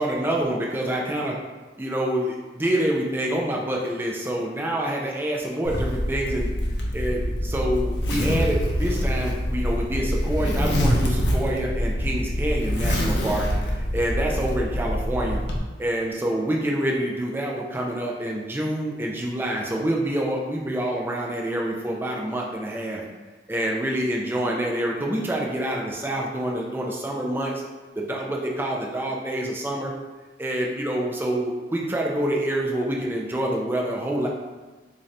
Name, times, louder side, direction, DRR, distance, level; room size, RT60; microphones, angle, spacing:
voice 1, 0.0-1.3 1.8-6.5 6.9-15.4 15.8-23.0 23.5-27.6 28.0-29.9 30.4-34.3, right 1 dB, 10° right, -2 dB, 0.4 m, -27 dB
Zipper (clothing), 5.7-15.6, equal, 70° left, 0.6 m, -25 dB
3.7 x 2.7 x 3.2 m, 1.3 s
head